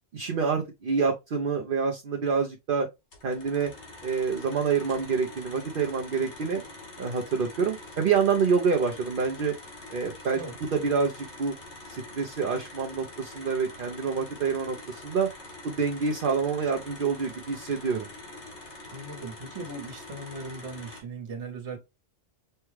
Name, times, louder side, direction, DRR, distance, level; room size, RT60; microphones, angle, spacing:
voice 1, 0.1-2.9 3.2-3.7 4.0-6.6 7.0-9.5 9.9-10.4 10.7-11.5 11.9-15.3 15.6-18.1, right 5 dB, 55° right, 0.8 m, -27 dB
sound 1, 3.1-21.0, left 2 dB, 75° left, 1.8 m, -45 dB
voice 2, 18.9-21.8, right 3 dB, 80° right, 1.4 m, -38 dB
5.5 x 2.2 x 3.1 m
omnidirectional pair, 1.2 m